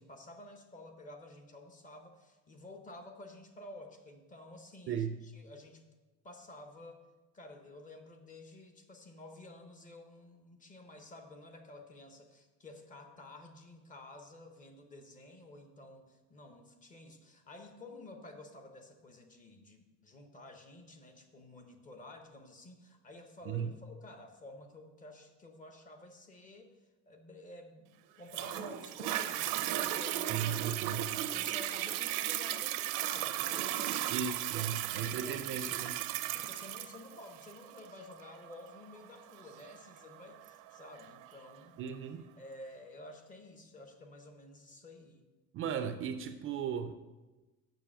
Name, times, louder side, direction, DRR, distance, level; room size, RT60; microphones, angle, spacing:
voice 1, 0.0-5.8 6.2-7.0 7.3-26.7 27.1-30.5 30.9-31.0 31.3-35.9 36.3-41.7 42.4-45.2, left 2 dB, 25° left, 5 dB, 0.9 m, -52 dB
Toilet flush, 28.3-41.3 41.9-42.0, right 13 dB, 85° right, 0.7 m, -36 dB
voice 2, 30.3-31.1 34.1-36.0 41.8-42.3 45.5-47.0, right 8 dB, 40° right, 9 dB, 0.4 m, -36 dB
6.8 x 6.1 x 7.5 m, 1.2 s
cardioid pair, 170°, 31 cm